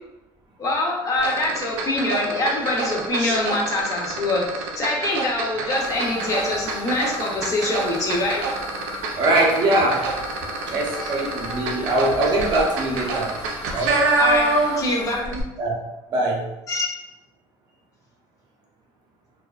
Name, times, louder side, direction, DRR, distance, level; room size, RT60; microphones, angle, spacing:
voice 1, 0.6-8.4 10.9-11.1 14.2-15.4 16.7-16.9, left 2 dB, 30° left, -2 dB, 0.5 m, -24 dB
sound 1, 1.2-15.0 15.2-15.4, right 3 dB, 85° right, 0.5 m, -26 dB
sound 2, 5.8-15.2, left 2 dB, 80° left, 0.5 m, -37 dB
voice 2, 9.1-10.1 10.6-13.4 13.7-14.0 14.4-14.6 15.6-15.9 16.1-16.5, right 2 dB, 40° right, -2 dB, 0.6 m, -22 dB
2.5 x 2.2 x 2.3 m, 0.94 s
cardioid pair, 120°, 11 cm